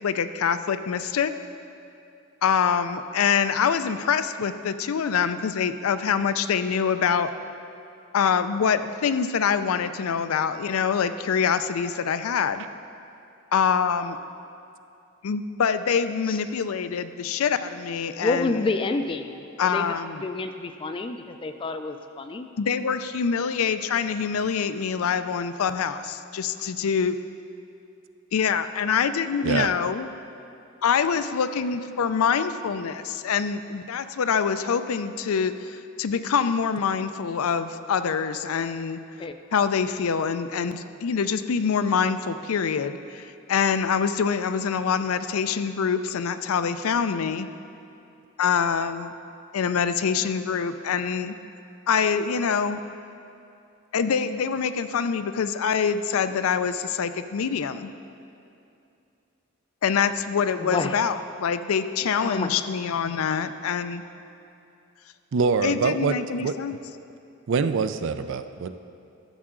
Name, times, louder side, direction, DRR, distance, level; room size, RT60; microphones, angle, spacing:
voice 1, 0.0-1.3 2.4-7.3 8.1-12.6 13.5-14.2 15.2-18.7 19.6-20.2 22.6-27.2 28.3-30.1 30.8-39.0 39.5-47.5 48.4-49.1 49.5-51.3 51.9-52.8 53.9-57.9 59.8-64.0 65.6-66.8, left 6 dB, 90° left, 11 dB, 0.4 m, -25 dB
voice 2, 18.2-20.0 20.2-22.5 39.2-39.3 60.6-61.0 62.2-62.5, left 3 dB, 25° left, 7 dB, 0.3 m, -29 dB
voice 3, 65.3-66.8 67.5-68.8, right 5 dB, 60° right, 11 dB, 0.4 m, -25 dB
13.0 x 7.2 x 3.7 m, 2.7 s
head